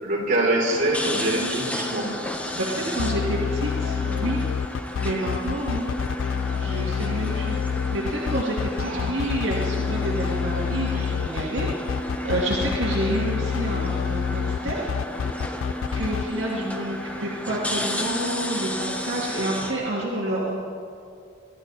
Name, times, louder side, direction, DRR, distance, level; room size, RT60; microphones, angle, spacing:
voice 1, 0.0-2.1 8.8-9.2 10.9-11.1 11.4-11.5, right 1 dB, 45° right, -3 dB, 3.4 m, -25 dB
sound 1, 0.6-19.7, left 1 dB, 5° left, 1.1 m, -32 dB
voice 2, 2.5-4.4 5.0-5.9 6.5-7.6 7.9-14.9 15.9-20.6, right 1 dB, 70° right, -4 dB, 2.0 m, -29 dB
sound 2, 3.0-16.2, left 7 dB, 80° left, 0.3 m, -27 dB
24.0 x 12.5 x 4.0 m, 2.6 s
head